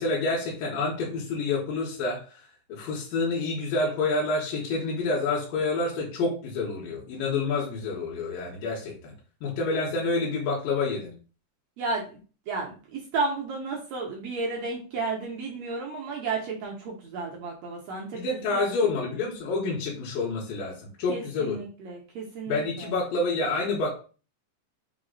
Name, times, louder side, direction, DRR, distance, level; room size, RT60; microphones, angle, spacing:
voice 1, 0.0-2.4 2.7-9.1 9.4-11.1 18.1-21.6 22.5-23.9, left 3 dB, 80° left, -4 dB, 2.7 m, -28 dB
voice 2, 12.5-18.2 18.5-18.6 21.1-22.6, right 3 dB, 75° right, -1 dB, 1.5 m, -32 dB
5.7 x 2.1 x 3.8 m, 0.36 s
omnidirectional pair, 4.0 m